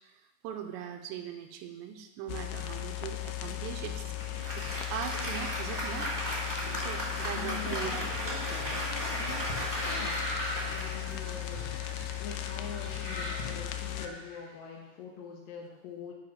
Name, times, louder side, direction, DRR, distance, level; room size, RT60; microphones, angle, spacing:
voice 1, 0.0-4.1 4.6-6.1 6.5-7.9 8.5-8.7, right 9 dB, 80° right, 6 dB, 2.7 m, -40 dB
sound 1, 2.3-14.1, left 13 dB, 90° left, 2.4 m, -37 dB
Applause, 4.2-11.8, equal, 20° right, 0.4 m, -36 dB
voice 2, 7.3-8.0 9.9-10.3 10.7-11.7 12.2-16.1, left 6 dB, 70° left, -3 dB, 2.3 m, -44 dB
sound 2, 8.6-14.4, equal, 50° left, 1.4 m, -41 dB
11.0 x 4.6 x 5.7 m, 1.0 s
omnidirectional pair, 5.4 m